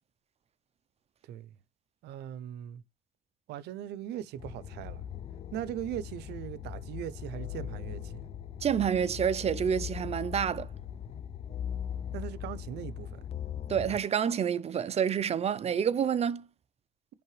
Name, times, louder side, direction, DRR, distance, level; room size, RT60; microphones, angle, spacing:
voice 1, 2.0-2.8 3.5-5.0 5.5-8.3 12.1-13.2, right 11 dB, 80° right, 0.7 m, -39 dB
sound 1, 4.4-14.0, left 9 dB, 35° left, 0.5 m, -40 dB
voice 2, 8.6-10.7 13.7-16.5, right 8 dB, 40° right, 0.6 m, -28 dB
10.5 x 3.5 x 3.2 m
cardioid pair, 110°, 17 cm